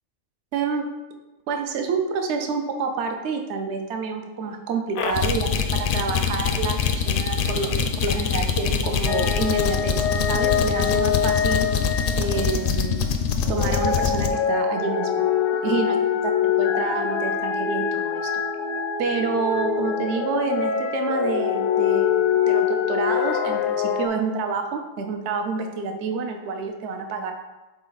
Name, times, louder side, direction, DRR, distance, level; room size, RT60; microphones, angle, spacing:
voice 1, 0.5-0.8 1.5-11.7 12.2-13.0 13.5-15.2 15.6-16.0 16.6-18.2 19.0-27.3, right 5 dB, 65° right, 5 dB, 0.9 m, -28 dB
sound 1, 4.9-14.3, left 6 dB, 60° left, 0.5 m, -24 dB
sound 2, 9.1-12.8 13.5-24.1, left 8 dB, 85° left, 1.0 m, -24 dB
6.0 x 4.2 x 3.9 m, 1.1 s
omnidirectional pair, 1.3 m